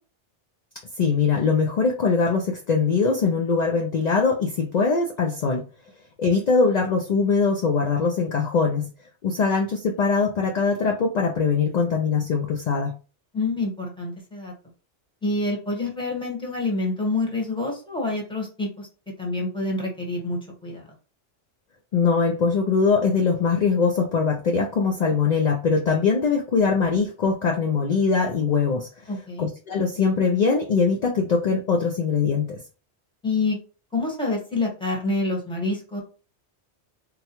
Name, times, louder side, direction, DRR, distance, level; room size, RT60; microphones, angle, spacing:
voice 1, 1.0-5.7 6.2-8.9 9.2-12.9 21.9-29.1 29.4-32.6, left 5 dB, 60° left, 2 dB, 0.4 m, -22 dB
voice 2, 13.3-14.5 15.2-18.9 19.2-20.9 29.1-29.5 33.2-33.6 33.9-36.0, left 2 dB, 5° left, -1 dB, 1.0 m, -27 dB
3.8 x 2.2 x 2.9 m, 0.35 s
omnidirectional pair, 1.2 m